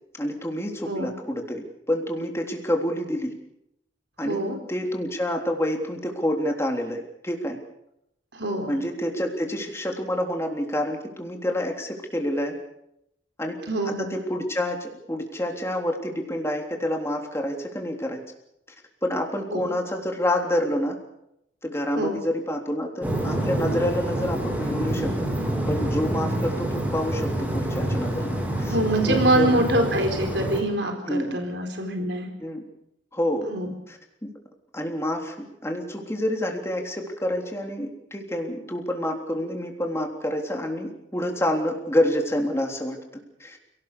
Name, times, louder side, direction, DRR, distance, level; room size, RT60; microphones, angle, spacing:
voice 1, 0.2-3.3 4.2-4.4 4.7-7.6 8.7-12.5 13.4-13.6 13.8-18.2 19.0-21.0 21.6-25.1 25.7-28.7 29.0-29.5 31.1-31.4 32.4-32.6 33.1-33.5 33.9-34.3 34.7-43.0 43.4-43.6, left 1 dB, 15° left, 2 dB, 3.5 m, -28 dB
voice 2, 4.2-4.6 8.3-8.7 13.7-14.1 19.5-19.8 21.9-22.2 28.7-32.3 33.5-33.7, right 1 dB, 70° right, 4 dB, 4.5 m, -25 dB
sound 1, 23.0-30.6, right 1 dB, 10° right, 5.8 m, -27 dB
29.5 x 18.5 x 6.9 m, 0.82 s
head